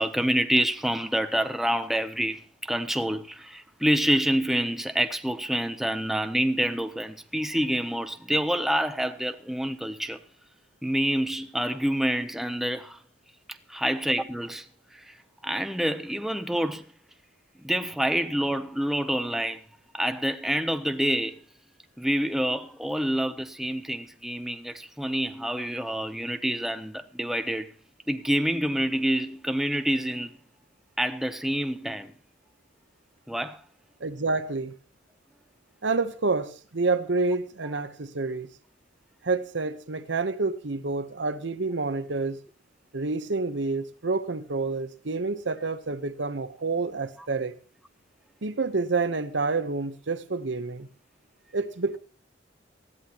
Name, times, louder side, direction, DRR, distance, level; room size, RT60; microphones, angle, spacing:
voice 1, 0.0-10.2 10.8-13.0 13.7-14.7 14.9-15.1 15.4-16.8 17.6-19.6 19.9-21.4 22.0-27.7 28.1-30.4 31.0-32.1 33.3-33.6 37.6-37.8, equal, ahead, 0.6 m, -27 dB
voice 2, 34.0-34.7 35.8-38.5 39.2-42.4 42.9-47.5 48.4-50.9 51.5-52.0, right 3 dB, 70° right, 0.9 m, -28 dB
19.5 x 14.0 x 2.9 m
head